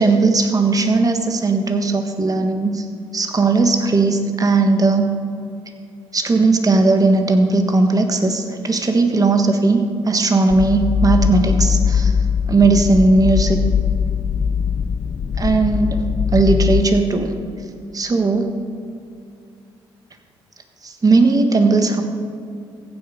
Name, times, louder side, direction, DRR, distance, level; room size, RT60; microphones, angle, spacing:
voice 1, 0.0-2.8 3.1-5.1 6.1-12.1 12.5-13.6 15.4-16.0 16.3-17.3 17.9-18.5 20.8-22.0, right 3 dB, 35° right, 6 dB, 1.6 m, -17 dB
sound 1, 10.5-16.8, left 7 dB, 50° left, 0.6 m, -20 dB
15.0 x 8.2 x 5.3 m, 2.4 s
supercardioid pair, 65°, 10 cm